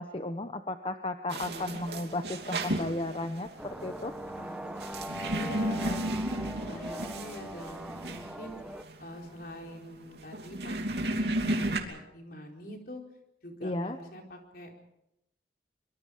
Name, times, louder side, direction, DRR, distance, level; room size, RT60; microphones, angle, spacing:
voice 1, 0.0-4.1 13.6-14.0, left 1 dB, 30° left, 8 dB, 0.9 m, -34 dB
sound 1, 1.3-11.8, right 1 dB, 70° right, 2.9 m, -34 dB
voice 2, 1.5-1.8 4.4-4.8 5.3-8.6 9.0-13.0 13.4-14.8, equal, 55° left, 2 dB, 4.3 m, -44 dB
sound 2, 3.6-8.8, equal, 5° right, 1.0 m, -41 dB
24.5 x 24.0 x 5.1 m, 0.84 s
head